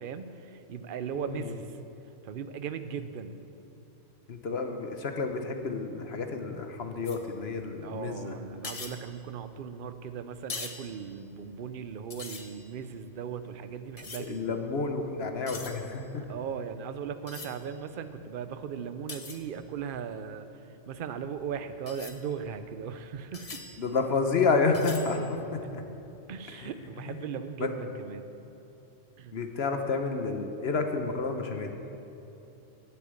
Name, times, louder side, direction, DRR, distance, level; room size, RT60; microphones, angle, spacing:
voice 1, 0.0-1.8 2.2-3.4 7.8-14.6 16.1-23.6 26.3-28.3 29.2-29.4, right 7 dB, 50° right, 10 dB, 0.7 m, -38 dB
voice 2, 1.2-1.5 4.3-8.3 14.3-16.2 23.8-25.8 26.6-26.7 27.1-27.2 27.6-27.7 29.3-31.7, left 4 dB, 55° left, 5 dB, 1.1 m, -30 dB
sound 1, 7.0-7.8 8.1-8.2 8.5-10.0 10.4-11.8 12.1-14.7 15.1-20.1 20.9-26.0, left 4 dB, 35° left, 0.8 m, -45 dB
11.0 x 8.3 x 8.2 m, 3.0 s
omnidirectional pair, 1.3 m